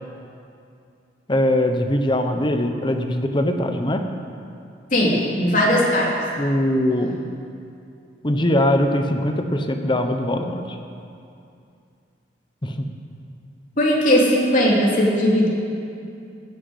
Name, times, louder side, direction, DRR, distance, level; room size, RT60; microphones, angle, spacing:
voice 1, 1.3-4.0 6.4-7.2 8.2-10.8 12.6-12.9, left 1 dB, 25° left, 5 dB, 1.1 m, -21 dB
voice 2, 4.9-6.1 13.8-15.5, equal, 45° left, -4 dB, 3.5 m, -18 dB
15.5 x 10.0 x 8.2 m, 2.5 s
head